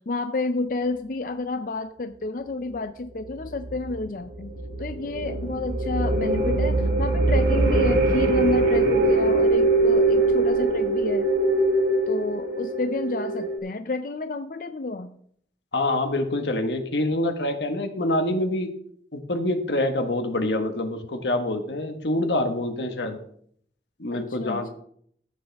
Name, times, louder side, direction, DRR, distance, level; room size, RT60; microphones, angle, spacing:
voice 1, 0.0-4.5 4.8-11.3 12.1-15.2 24.1-24.7, left 3 dB, 50° left, 9 dB, 0.5 m, -30 dB
sound 1, 3.3-13.6, right 2 dB, 65° right, 2.5 m, -22 dB
voice 2, 15.7-18.7 19.1-23.2 24.0-24.7, left 1 dB, 85° left, 6 dB, 1.5 m, -26 dB
14.0 x 8.6 x 3.5 m, 0.64 s
head